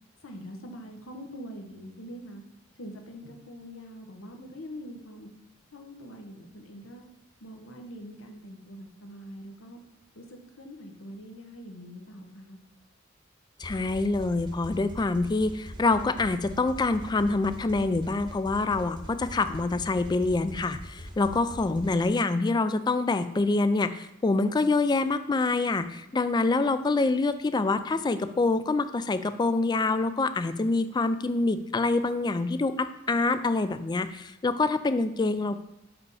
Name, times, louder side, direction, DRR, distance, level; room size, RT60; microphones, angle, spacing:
voice 1, 0.2-2.4 2.8-5.3 5.7-7.0 7.4-9.8 10.1-12.6, equal, 85° left, 3 dB, 1.1 m, -43 dB
voice 2, 13.6-35.6, left 3 dB, 20° left, 12 dB, 0.3 m, -26 dB
sound 1, 13.6-22.0, equal, 25° right, 0.9 m, -43 dB
5.4 x 5.0 x 4.8 m, 0.89 s
head